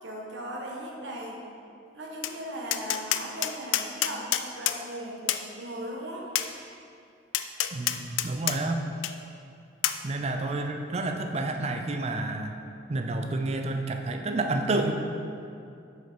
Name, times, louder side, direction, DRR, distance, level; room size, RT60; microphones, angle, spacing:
voice 1, 0.0-1.4 1.9-6.3, equal, 70° right, -1 dB, 1.0 m, -38 dB
Tap, 2.2-2.4 2.7-4.8 5.3-5.4 6.4-6.5 7.3-8.6 9.0-9.1 9.8-10.0, left 12 dB, 75° left, 0.3 m, -27 dB
voice 2, 7.7-8.8 10.0-12.5 12.9-14.9, right 2 dB, 35° right, 5 dB, 0.4 m, -29 dB
6.6 x 5.2 x 4.4 m, 2.5 s
head